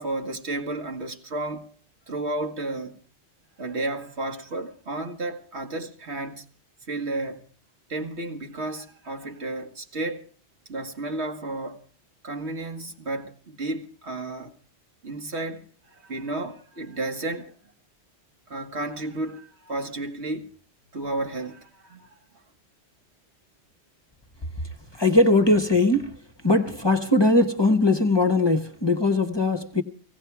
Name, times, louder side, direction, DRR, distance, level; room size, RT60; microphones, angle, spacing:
voice 1, 0.0-1.7 2.1-3.0 3.6-6.4 6.9-7.4 7.9-10.2 10.7-11.8 12.2-14.5 15.0-15.6 15.9-17.5 18.5-20.5 20.9-22.1, right 2 dB, 70° right, 2.0 m, -32 dB
voice 2, 24.9-26.1 26.4-29.8, left 2 dB, 25° left, 1.0 m, -20 dB
17.5 x 17.0 x 4.7 m
omnidirectional pair, 1.2 m